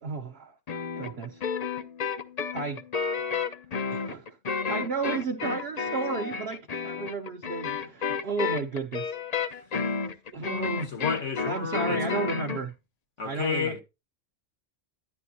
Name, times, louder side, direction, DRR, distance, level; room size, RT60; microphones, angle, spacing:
voice 1, 0.0-1.4 2.5-2.8 3.9-4.3 4.7-9.1 10.3-10.9 11.5-12.7 13.2-13.8, right 4 dB, 55° right, 1.0 m, -33 dB
sound 1, 0.7-12.6, left 5 dB, 45° left, 0.6 m, -31 dB
voice 2, 10.6-12.2 13.2-13.8, left 6 dB, 70° left, 1.9 m, -31 dB
11.0 x 9.8 x 2.7 m
omnidirectional pair, 1.3 m